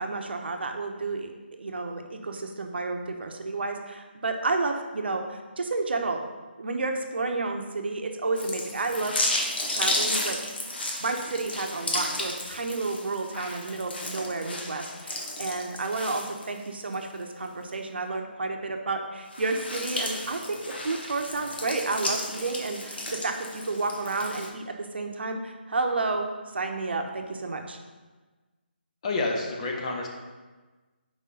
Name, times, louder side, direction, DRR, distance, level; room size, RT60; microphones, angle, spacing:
voice 1, 0.0-1.3 1.6-6.2 6.6-9.2 9.7-10.4 11.0-20.6 20.8-27.8, right 3 dB, 65° right, 4 dB, 0.8 m, -31 dB
sound 1, 8.4-16.9 17.4-17.5 19.2-24.5, left 1 dB, 65° left, 1.2 m, -33 dB
voice 2, 29.0-30.1, left 3 dB, 35° left, 1 dB, 0.9 m, -28 dB
4.8 x 3.8 x 5.6 m, 1.3 s
figure-of-eight pair, 160°, 6 cm